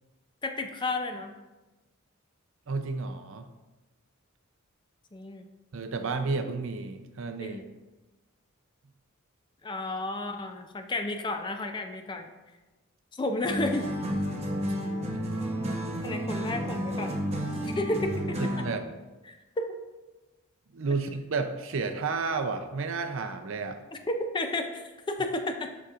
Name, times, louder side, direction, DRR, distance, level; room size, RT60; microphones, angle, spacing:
voice 1, 0.4-1.3 5.1-5.5 7.4-7.6 9.6-12.3 13.1-13.9 16.0-17.3 17.6-18.4 19.3-19.8 23.9-25.7, left 2 dB, 20° left, 6 dB, 0.4 m, -32 dB
voice 2, 2.7-3.5 5.7-7.7 15.1-15.8 18.4-18.8 20.7-23.8, right 4 dB, 65° right, 7 dB, 0.5 m, -32 dB
sound 1, 13.4-18.8, equal, 30° right, 0.9 m, -31 dB
6.9 x 6.2 x 2.5 m, 1.1 s
head